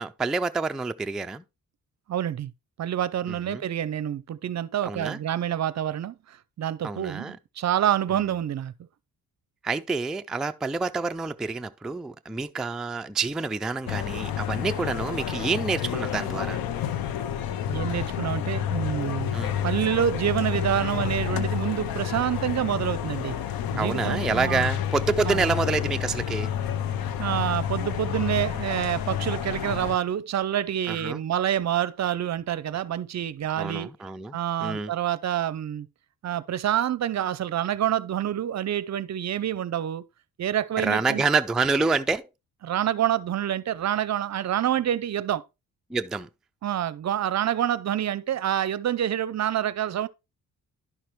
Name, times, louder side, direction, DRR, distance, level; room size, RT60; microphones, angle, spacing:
voice 1, 0.0-1.4 3.3-3.6 4.8-5.2 6.8-7.4 9.6-16.6 19.3-19.5 23.8-26.5 30.9-31.2 33.6-34.9 40.8-42.2 45.9-46.3, right 4 dB, ahead, 0.3 m, -27 dB
voice 2, 2.1-2.5 2.8-8.7 17.7-19.3 19.6-23.3 23.7-24.7 25.3-25.5 27.2-33.9 34.3-35.9 36.2-40.0 40.4-41.2 42.6-45.4 46.6-50.1, right 10 dB, 50° right, 0.6 m, -27 dB
sound 1, 13.9-30.0, left 9 dB, 85° left, 0.7 m, -29 dB
11.0 x 5.9 x 3.2 m
cardioid pair, 90°, 35 cm